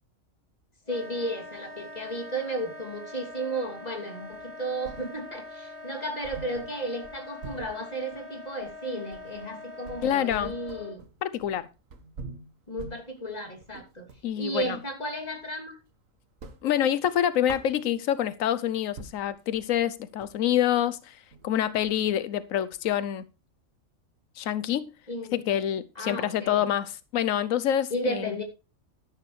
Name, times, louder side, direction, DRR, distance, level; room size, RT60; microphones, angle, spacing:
voice 1, 0.9-11.0 12.7-14.1 14.4-15.8 25.1-25.4 25.9-26.6 27.9-28.4, right 1 dB, 30° left, 3 dB, 3.0 m, -34 dB
Wind instrument woodwind instrument, 0.9-11.0, left 2 dB, 45° right, 2.7 m, -43 dB
sound 1, 4.3-5.5 5.8-5.9 6.2-14.8 15.2-16.0 16.2-18.3 18.7-18.8 19.0-23.1, right 3 dB, 85° right, 1.7 m, -46 dB
voice 2, 10.0-10.5 11.2-11.7 14.2-14.8 16.6-21.2 21.4-23.2 24.4-24.9 25.3-28.3, left 10 dB, 90° left, 14 dB, 1.1 m, -26 dB
12.5 x 10.5 x 3.2 m, 0.31 s
omnidirectional pair, 1.3 m